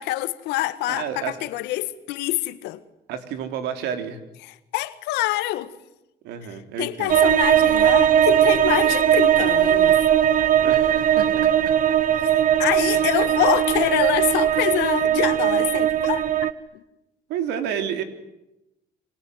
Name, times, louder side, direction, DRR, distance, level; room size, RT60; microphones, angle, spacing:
voice 1, 0.0-2.8 4.7-5.7 6.8-10.0 12.2-16.3 16.7-16.8, left 16 dB, 90° left, 1.8 m, -25 dB
voice 2, 0.9-1.5 3.1-4.2 6.2-7.1 10.6-11.7 12.9-13.1 17.3-18.0, right 8 dB, 90° right, 3.6 m, -30 dB
sound 1, 7.1-16.5, right 10 dB, 55° right, 1.4 m, -19 dB
28.0 x 25.0 x 8.1 m
cardioid pair, 110°, 17 cm